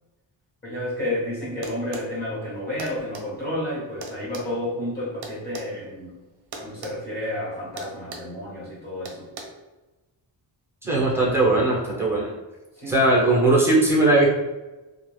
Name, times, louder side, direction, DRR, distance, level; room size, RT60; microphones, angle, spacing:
voice 1, 0.6-6.2 6.6-9.3 12.7-13.3, left 1 dB, 20° left, -8 dB, 1.1 m, -31 dB
sound 1, 1.6-2.1 2.8-3.3 4.0-5.7 6.5-7.0 7.2-7.4 7.8-8.3 9.1-9.4, right 3 dB, 60° right, 0.6 m, -37 dB
voice 2, 10.8-12.3 12.9-14.3, right 2 dB, 5° right, -4 dB, 0.8 m, -19 dB
2.4 x 2.4 x 3.1 m, 1.1 s
cardioid pair, 125°, 45 cm